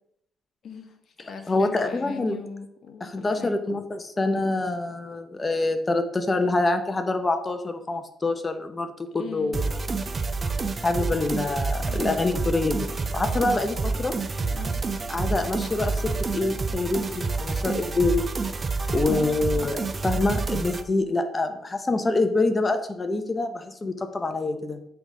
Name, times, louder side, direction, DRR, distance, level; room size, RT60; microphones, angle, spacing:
voice 1, 0.6-3.6 9.2-9.6 11.8-12.0 14.5-14.8 18.8-19.4, left 6 dB, 60° left, 6 dB, 1.0 m, -40 dB
voice 2, 1.5-2.4 3.0-9.7 10.8-14.2 15.1-18.3 18.9-24.8, left 2 dB, 25° left, 7 dB, 0.7 m, -26 dB
sound 1, 9.5-20.8, right 4 dB, 35° right, 0.5 m, -28 dB
7.9 x 3.4 x 3.7 m, 0.74 s
cardioid pair, 90°, 0 cm